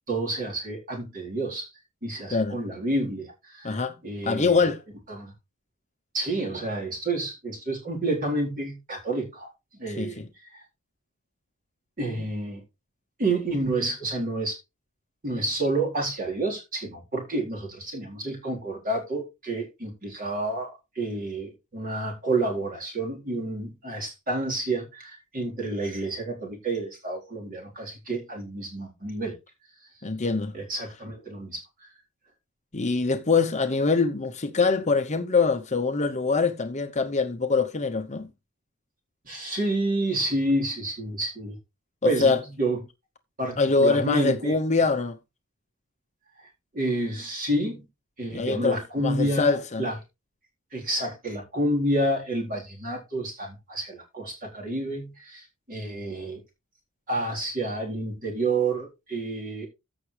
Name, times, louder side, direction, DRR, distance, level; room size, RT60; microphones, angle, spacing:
voice 1, 0.1-1.6 2.0-3.8 4.0-4.7 5.1-5.3 6.1-10.6 12.0-12.6 13.2-14.6 15.2-29.4 30.5-31.6 39.2-41.6 42.0-42.8 43.4-44.6 46.7-47.8 48.2-49.9 50.7-56.4 57.1-59.7, right 2 dB, 40° right, 4.0 m, -29 dB
voice 2, 3.6-4.0 4.2-4.8 10.0-10.3 12.2-12.3 30.0-30.5 32.7-38.3 42.0-42.4 43.6-45.2 48.3-49.9, left 4 dB, 30° left, 0.8 m, -24 dB
15.0 x 5.9 x 3.3 m
head